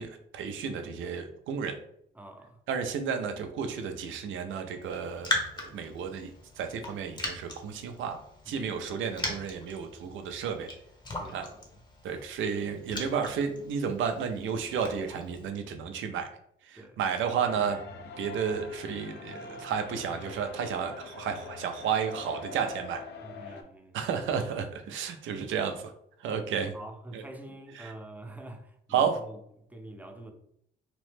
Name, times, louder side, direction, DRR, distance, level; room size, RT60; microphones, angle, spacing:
voice 1, 0.0-1.8 2.7-8.2 8.5-10.7 11.3-11.5 12.0-16.3 16.6-17.8 18.2-23.0 23.9-25.9 26.2-26.7 27.1-27.2 27.8-27.9 28.9-29.2, right 7 dB, 75° right, 0.5 m, -32 dB
voice 2, 2.1-2.6 8.5-8.9 11.1-11.7 12.5-13.3 16.7-17.0 23.2-24.0 26.7-29.4 29.7-30.3, right 1 dB, 10° right, 0.4 m, -47 dB
Raindrop, 4.8-15.5, left 1 dB, 20° left, 0.7 m, -39 dB
sound 1, 17.5-23.6, left 3 dB, 60° left, 0.5 m, -44 dB
2.9 x 2.1 x 3.2 m
cardioid pair, 90°, 20 cm